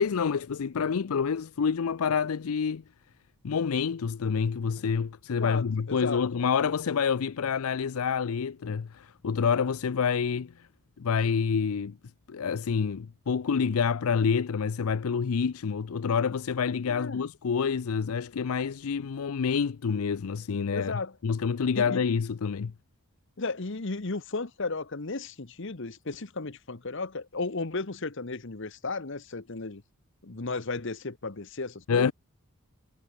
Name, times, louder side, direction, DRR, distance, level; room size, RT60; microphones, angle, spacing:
voice 1, 0.0-2.8 3.4-10.7 11.0-12.0 12.3-22.7 31.9-32.1, left 6 dB, 75° left, 0.5 m, -28 dB
voice 2, 5.4-6.2 16.9-17.2 20.7-21.1 21.8-22.0 23.4-29.8 30.2-32.1, left 3 dB, 55° left, 1.1 m, -34 dB
head